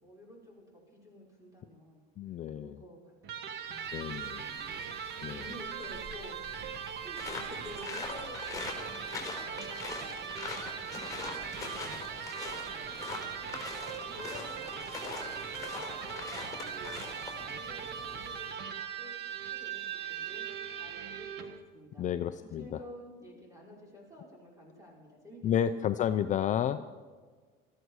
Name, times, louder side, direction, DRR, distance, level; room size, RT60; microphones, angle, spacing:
voice 1, 0.0-2.0 2.6-3.0 3.3-4.7 5.2-13.6 14.1-22.1 22.4-26.0, left 1 dB, 15° right, -2 dB, 5.6 m, -52 dB
voice 2, 2.2-2.7 3.9-4.4 5.2-5.4 22.0-22.7 25.4-26.8, left 9 dB, 40° left, 10 dB, 0.5 m, -31 dB
Electric guitar, 3.2-21.6, right 7 dB, 55° right, 1.4 m, -40 dB
sound 1, 3.5-18.7, right 2 dB, 35° right, 1.7 m, -54 dB
sound 2, 7.2-17.5, left 4 dB, 15° left, 4.4 m, -42 dB
19.5 x 14.0 x 4.8 m, 1.5 s
cardioid pair, 125°, 20 cm